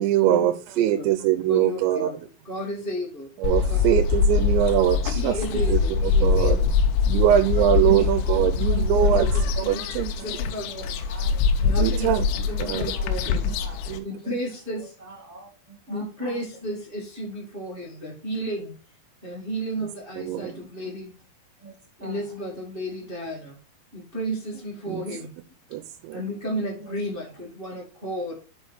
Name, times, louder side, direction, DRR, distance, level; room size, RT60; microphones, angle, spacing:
voice 1, 0.0-2.1 3.4-5.3 5.7-6.6 7.1-10.1 11.8-12.3 12.7-12.9 13.4-13.6 13.9-14.4 20.2-20.5 24.9-25.0 25.7-26.2, right 12 dB, 90° right, 3.0 m, -23 dB
voice 2, 1.5-2.1 2.4-3.3 3.7-4.0 5.1-5.7 6.1-6.7 7.8-7.9 8.7-9.2 9.6-9.9 10.2-10.7 11.6-12.1 12.5-13.5 14.0-14.9 15.9-18.7 19.2-21.1 22.0-23.6 23.9-25.3 26.1-28.3, equal, 65° right, 0.5 m, -33 dB
sound 1, 3.4-14.0, left 5 dB, 85° left, 2.8 m, -23 dB
voice 3, 10.2-13.1 13.6-13.8 14.7-16.4 16.7-16.8 21.6-21.7 22.0-22.3 26.8-27.4, right 2 dB, 10° right, 2.4 m, -45 dB
6.4 x 5.7 x 4.7 m
omnidirectional pair, 5.1 m